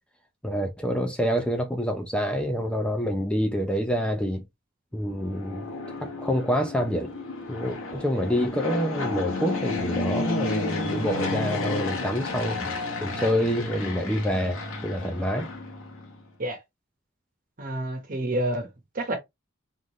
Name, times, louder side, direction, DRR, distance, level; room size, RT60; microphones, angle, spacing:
voice 1, 0.4-4.4 4.9-5.7 6.0-7.1 7.5-12.7 13.0-15.5, equal, 5° left, 0.6 m, -27 dB
Fixed-wing aircraft airplane, 5.1-16.2, left 2 dB, 85° left, 1.8 m, -32 dB
voice 2, 17.6-18.7 18.9-19.2, right 1 dB, 45° right, 1.3 m, -28 dB
3.8 x 3.7 x 3.1 m
head